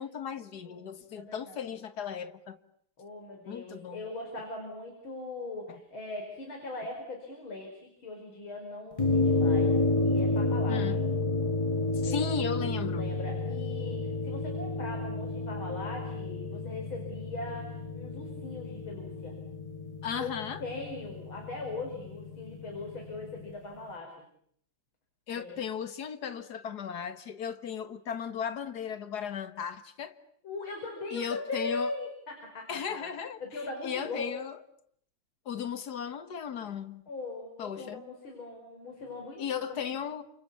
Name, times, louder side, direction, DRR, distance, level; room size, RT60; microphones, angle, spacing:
voice 1, 0.0-2.6 3.5-4.1 5.7-5.8 10.7-11.0 12.0-13.2 20.0-20.6 25.3-30.2 31.1-31.9 32.7-33.4 33.8-34.6 35.5-37.0 37.6-38.0 39.4-40.2, left 7 dB, 50° left, 1.8 m, -36 dB
voice 2, 0.6-1.7 3.0-9.7 10.0-10.9 12.0-12.3 12.6-19.4 20.1-20.3 20.6-24.1 25.4-25.6 30.4-33.1 33.4-34.3 37.1-39.9, left 2 dB, 65° left, 5.9 m, -40 dB
sound 1, 9.0-23.5, left 2 dB, 20° left, 1.0 m, -31 dB
30.0 x 28.0 x 7.1 m
omnidirectional pair, 2.4 m